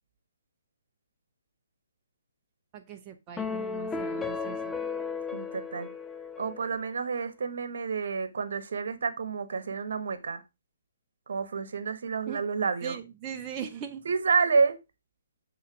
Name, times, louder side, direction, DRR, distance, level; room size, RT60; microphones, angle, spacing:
voice 1, 2.7-4.7 12.3-12.5 12.8-14.1, right 8 dB, 25° right, 0.7 m, -40 dB
sound 1, 3.4-6.9, left 5 dB, 10° left, 0.4 m, -35 dB
voice 2, 5.3-5.9 6.4-10.4 11.3-13.0 14.0-14.8, right 5 dB, 65° right, 1.0 m, -29 dB
8.2 x 3.9 x 4.7 m
figure-of-eight pair, 135°, 0 cm